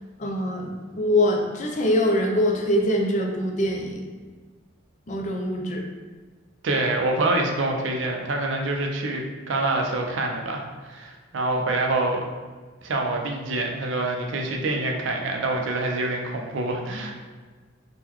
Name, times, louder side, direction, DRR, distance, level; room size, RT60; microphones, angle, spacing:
voice 1, 0.2-4.1 5.1-5.8, left 1 dB, 40° left, 0 dB, 0.5 m, -23 dB
voice 2, 6.6-12.3 12.8-17.1, right 2 dB, 70° right, 2 dB, 0.5 m, -26 dB
3.6 x 2.2 x 3.0 m, 1.4 s
head